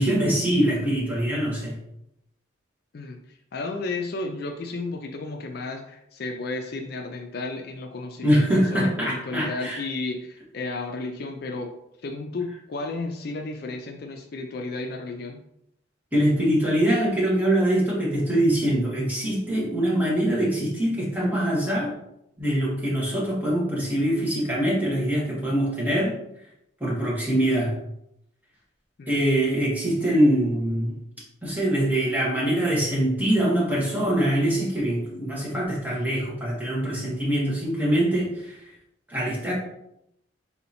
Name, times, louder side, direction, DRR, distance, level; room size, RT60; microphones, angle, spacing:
voice 1, 0.0-1.8 8.2-9.8 16.1-21.9 22.4-26.1 26.8-27.8 29.1-31.0 31.4-38.6 39.1-39.5, right 1 dB, 10° right, -6 dB, 1.3 m, -23 dB
voice 2, 2.9-11.7 12.0-15.4 29.0-29.2, left 3 dB, 50° left, 3 dB, 0.4 m, -33 dB
3.9 x 2.8 x 4.1 m, 0.80 s
head